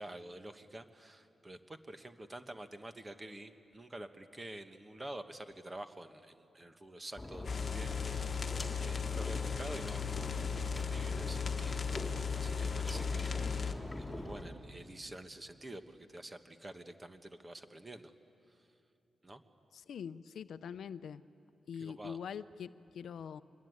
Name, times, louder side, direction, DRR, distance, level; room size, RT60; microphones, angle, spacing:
voice 1, 0.0-8.3 8.8-11.9 12.3-18.1 18.5-18.6 19.2-19.4 21.8-22.2, right 1 dB, 20° right, 8 dB, 1.2 m, -48 dB
sound 1, 7.2-14.4, left 1 dB, 10° left, 3.2 m, -42 dB
sound 2, 7.4-13.7, left 6 dB, 40° left, 1.4 m, -36 dB
voice 2, 19.7-21.2 21.7-23.4, left 7 dB, 75° left, 14 dB, 0.6 m, -43 dB
25.5 x 21.5 x 9.6 m, 2.7 s
wide cardioid pair, 125°, 0 cm